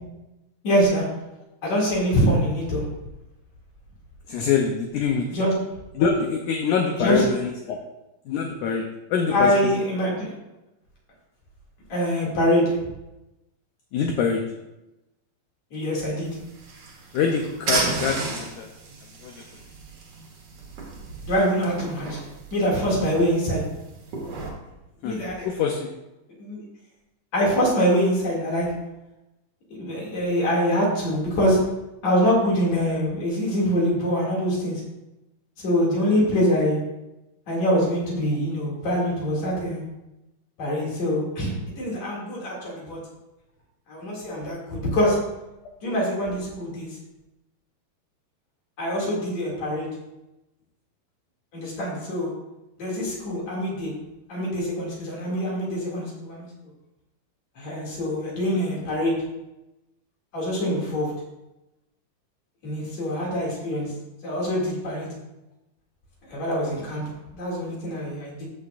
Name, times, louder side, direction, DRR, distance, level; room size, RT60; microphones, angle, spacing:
voice 1, 0.6-1.1 1.6-2.8 5.3-5.5 7.0-7.2 9.3-10.4 11.9-12.7 15.7-16.3 21.3-22.2 22.5-23.7 25.0-25.5 26.4-26.6 27.3-28.7 29.8-31.6 32.0-34.8 35.6-36.8 37.5-39.8 40.6-43.0 43.9-45.2 45.8-47.0 48.8-49.9 51.5-52.3 52.8-53.9 54.3-56.5 57.6-59.2 60.3-61.1 62.6-63.9 64.2-65.2 66.3-67.1 67.3-68.5, equal, 50° left, -4 dB, 3.5 m, -24 dB
voice 2, 4.3-5.3 6.0-7.8 8.3-9.5 13.9-14.4 17.1-18.7 19.2-19.4 25.0-25.2 25.4-25.9, left 6 dB, 75° left, 2 dB, 1.9 m, -24 dB
sound 1, 16.2-24.5, right 3 dB, 50° right, 2.3 m, -33 dB
14.0 x 7.2 x 2.5 m, 0.96 s
omnidirectional pair, 4.2 m